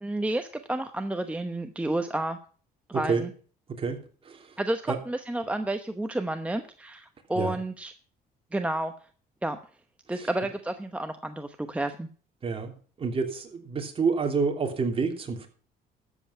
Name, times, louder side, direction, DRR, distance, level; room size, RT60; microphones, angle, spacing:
voice 1, 0.0-2.4 2.9-3.3 4.6-7.9 8.5-8.9 9.4-9.6 10.1-12.1, right 1 dB, 5° right, 7 dB, 0.9 m, -30 dB
voice 2, 13.0-15.5, right 5 dB, 35° right, 3 dB, 3.0 m, -28 dB
13.0 x 8.0 x 5.6 m, 0.42 s
cardioid pair, 110°, 17 cm